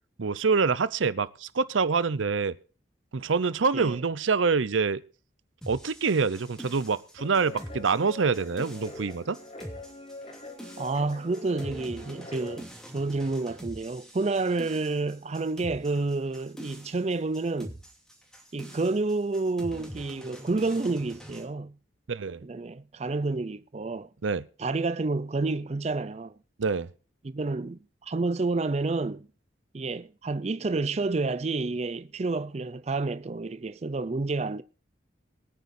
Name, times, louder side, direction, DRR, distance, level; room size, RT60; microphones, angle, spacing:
voice 1, 0.2-2.6 3.1-5.0 5.7-9.4 22.1-22.4 24.2-24.4 26.6-26.9, right 5 dB, 90° right, 0.7 m, -26 dB
sound 1, 5.6-21.4, equal, 5° left, 2.6 m, -45 dB
Guitar, 7.2-12.6, left 1 dB, 35° left, 3.5 m, -43 dB
voice 2, 10.8-12.7 12.9-17.8 18.5-21.8 22.4-24.1 24.6-26.3 27.2-29.3 29.7-34.6, right 3 dB, 35° right, 0.4 m, -29 dB
23.5 x 9.4 x 2.6 m
head